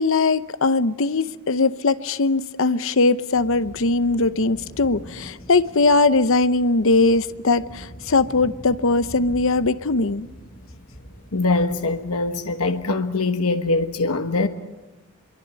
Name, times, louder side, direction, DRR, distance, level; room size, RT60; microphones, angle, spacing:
voice 1, 0.0-10.3, left 3 dB, 60° left, 0.8 m, -20 dB
sound 1, 3.3-12.9, equal, 40° left, 3.7 m, -43 dB
voice 2, 11.3-14.5, left 3 dB, 90° left, 1.4 m, -22 dB
24.5 x 23.5 x 8.3 m
head